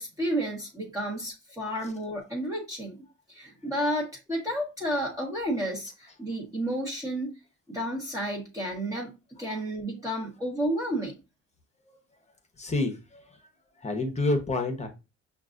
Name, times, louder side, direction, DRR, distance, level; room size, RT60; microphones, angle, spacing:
voice 1, 0.0-3.0 3.3-7.3 7.7-11.2, equal, 10° right, 1.2 m, -31 dB
voice 2, 12.6-13.4 13.8-14.9, left 2 dB, 20° left, 1.0 m, -29 dB
5.7 x 2.5 x 2.5 m
cardioid pair, 90°, 30 cm